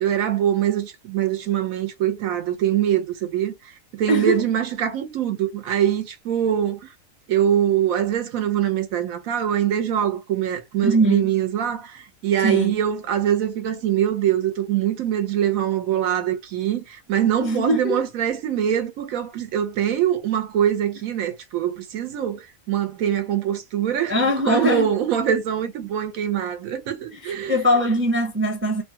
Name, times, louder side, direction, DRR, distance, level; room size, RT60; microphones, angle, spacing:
voice 1, 0.0-6.8 7.3-24.1 24.4-27.6, right 10 dB, 90° right, 1.1 m, -23 dB
voice 2, 4.1-4.4 10.8-11.3 12.4-12.8 17.4-18.0 24.1-24.9 27.1-28.8, equal, 20° right, 0.3 m, -21 dB
2.9 x 2.2 x 2.7 m
omnidirectional pair, 1.4 m